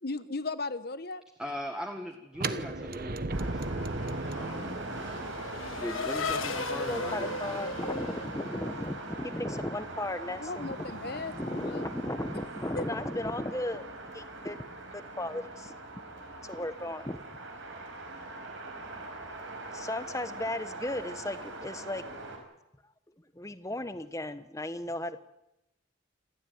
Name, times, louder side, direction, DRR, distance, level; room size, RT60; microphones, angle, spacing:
voice 1, 0.0-1.2 5.5-5.8 10.4-11.8 12.8-12.9, left 3 dB, 50° left, 14 dB, 1.2 m, -37 dB
voice 2, 1.4-3.8 4.3-4.8 5.7-7.6, equal, 5° right, 3 dB, 1.8 m, -40 dB
Turning on a hi-tech room, 2.3-8.2, right 2 dB, 45° right, 1.1 m, -37 dB
Race car auto racing / Accelerating revving vroom, 3.2-9.3, left 4 dB, 85° left, 1.8 m, -37 dB
sound 1, 3.3-22.4, right 2 dB, 65° right, 6.1 m, -42 dB
voice 3, 6.9-13.8 14.1-14.6 15.2-15.7 16.4-17.2 19.7-22.0 23.3-25.2, left 1 dB, 15° left, 12 dB, 1.1 m, -35 dB
28.0 x 13.5 x 9.5 m, 0.89 s
head